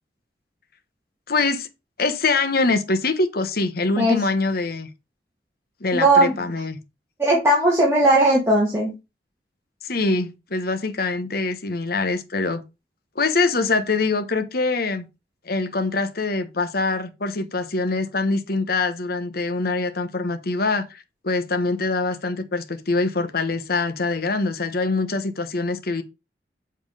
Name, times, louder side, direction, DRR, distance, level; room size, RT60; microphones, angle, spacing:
voice 1, 1.3-1.7 2.0-4.9 5.8-6.8 9.8-12.6 13.2-15.1 15.5-26.0, left 3 dB, 60° left, 1.1 m, -24 dB
voice 2, 5.9-6.4 7.2-8.9, right 1 dB, 15° right, 2.2 m, -17 dB
7.5 x 4.5 x 4.9 m
head